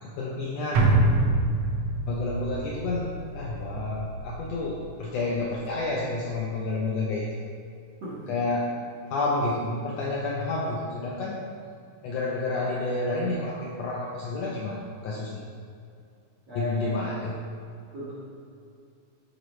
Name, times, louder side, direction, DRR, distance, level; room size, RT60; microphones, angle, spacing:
voice 1, 0.0-0.9 2.1-7.3 8.3-8.7 9.1-11.4 12.0-15.4 16.5-17.3, left 2 dB, 80° left, -3 dB, 1.5 m, -30 dB
sound 1, 0.7-5.2 5.5-5.6, right 2 dB, 80° right, 1.3 m, -26 dB
voice 2, 8.0-8.3 16.5-17.0 17.9-18.1, equal, 55° right, -9 dB, 1.3 m, -35 dB
9.4 x 4.0 x 3.1 m, 2.4 s
omnidirectional pair, 3.5 m